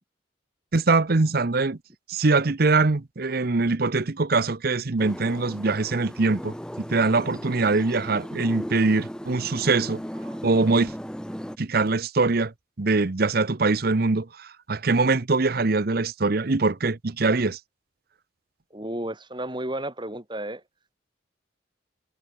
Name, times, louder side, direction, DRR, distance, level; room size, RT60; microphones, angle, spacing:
voice 1, 0.7-1.8 2.1-10.0 10.4-10.9 11.6-12.5 12.8-17.6, right 3 dB, 55° right, 0.8 m, -23 dB
sound 1, 5.0-11.6, equal, 5° left, 2.7 m, -37 dB
voice 2, 18.7-20.6, right 1 dB, 25° right, 6.7 m, -32 dB
head